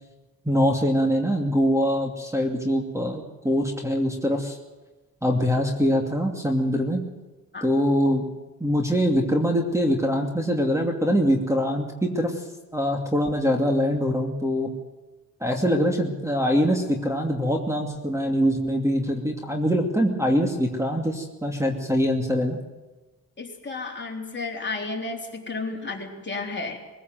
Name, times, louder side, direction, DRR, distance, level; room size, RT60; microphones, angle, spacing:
voice 1, 0.4-4.6 5.2-7.0 7.6-8.3 8.6-12.4 12.7-14.7 15.4-22.6, equal, 10° right, 2 dB, 2.6 m, -23 dB
voice 2, 23.4-26.8, left 3 dB, 30° left, 1 dB, 3.8 m, -32 dB
23.0 x 16.0 x 7.8 m, 1.2 s
cardioid pair, 100°, 36 cm